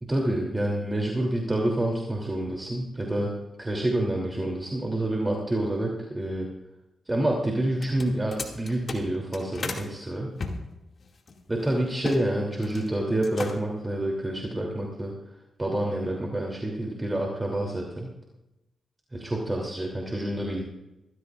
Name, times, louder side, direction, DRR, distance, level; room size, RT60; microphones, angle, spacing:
voice 1, 0.0-3.3 3.6-6.5 7.1-10.4 11.5-15.1 15.6-18.1 19.1-20.6, right 1 dB, 20° right, -1 dB, 3.0 m, -28 dB
sound 1, 7.7-9.9 10.4-12.2 12.5-12.9 13.2-13.8, left 4 dB, 55° left, 2.3 m, -36 dB
21.5 x 15.0 x 2.5 m, 0.95 s
cardioid pair, 55°, 0 cm